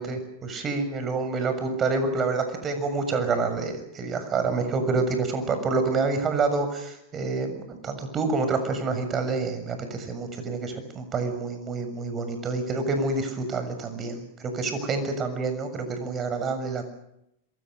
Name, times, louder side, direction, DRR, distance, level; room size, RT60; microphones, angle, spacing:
voice 1, 0.0-16.8, right 4 dB, 30° right, 8 dB, 6.9 m, -28 dB
27.0 x 23.0 x 6.6 m, 0.80 s
hypercardioid pair, 100°, 0 cm